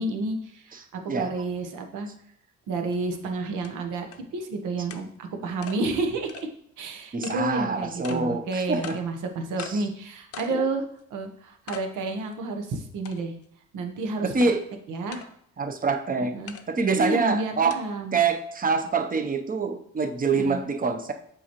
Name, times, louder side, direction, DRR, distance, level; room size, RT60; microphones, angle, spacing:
voice 1, 0.0-2.1 2.7-4.1 4.3-6.3 6.8-10.8 11.1-13.3 13.7-14.3 14.9-15.2 16.3-16.5 17.0-18.2 20.3-20.6, right 3 dB, 85° right, 5 dB, 1.0 m, -30 dB
sound 1, 2.9-3.0 3.6-3.7 4.1-4.2 4.9-5.0 5.6-5.8 6.3-6.5 7.2-7.4 8.0-8.2 8.8-9.0 9.6-9.8 10.3-10.6 11.0-11.1 11.7-11.9 12.3-12.4 13.0-13.4 14.4-14.5 15.1-15.3 16.5-16.6 17.7-17.8, left 8 dB, 50° left, 0.6 m, -39 dB
voice 2, 7.1-9.0 9.6-9.8 10.5-10.6 14.2-14.6 15.6-16.4 16.7-17.8 18.1-21.1, right 4 dB, 30° right, 6 dB, 0.7 m, -25 dB
7.0 x 4.9 x 3.0 m, 0.69 s
cardioid pair, 90°, 30 cm